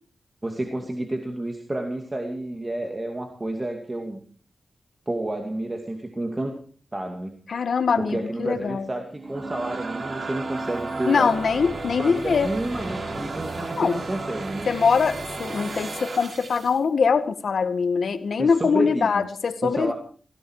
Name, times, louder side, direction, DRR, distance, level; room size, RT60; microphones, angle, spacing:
voice 1, 0.4-4.2 5.1-6.6 6.9-7.3 8.0-11.4 12.0-14.7 18.4-19.2 19.6-19.9, right 1 dB, 25° right, 3 dB, 2.4 m, -30 dB
voice 2, 7.5-8.9 11.1-12.5 13.8-14.0 14.7-19.9, left 5 dB, 80° left, 10 dB, 1.5 m, -23 dB
sound 1, 9.1-16.8, right 3 dB, 55° right, 2.8 m, -33 dB
17.5 x 16.5 x 4.8 m, 0.43 s
wide cardioid pair, 85°, 0 cm